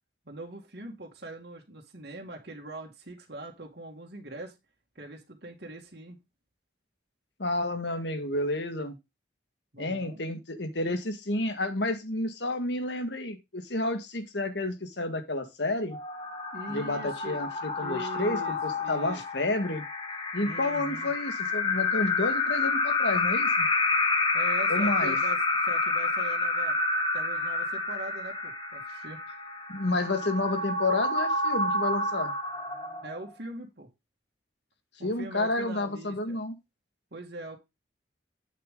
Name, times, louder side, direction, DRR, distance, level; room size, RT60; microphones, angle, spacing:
voice 1, 0.3-4.5 5.0-6.2 9.7-10.2 16.5-17.5 17.8-19.2 20.4-21.1 24.3-25.4 25.6-26.8 27.1-29.2 33.0-33.9 35.0-36.4 37.1-37.6, right 2 dB, 60° right, 1 dB, 2.2 m, -42 dB
voice 2, 7.4-9.0 9.8-16.0 16.7-19.8 20.3-23.7 24.7-25.2 29.7-32.3 35.0-36.5, left 2 dB, 70° left, 8 dB, 1.8 m, -30 dB
sound 1, 15.9-33.3, left 3 dB, 25° left, 1.5 m, -29 dB
8.6 x 7.0 x 3.8 m, 0.23 s
head